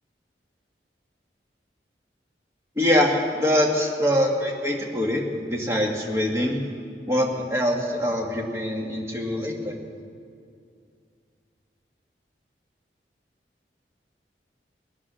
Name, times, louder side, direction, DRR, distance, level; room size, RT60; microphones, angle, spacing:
voice 1, 2.8-6.6 7.1-9.8, left 1 dB, 15° right, -1 dB, 1.8 m, -24 dB
21.5 x 9.8 x 6.3 m, 2.3 s
head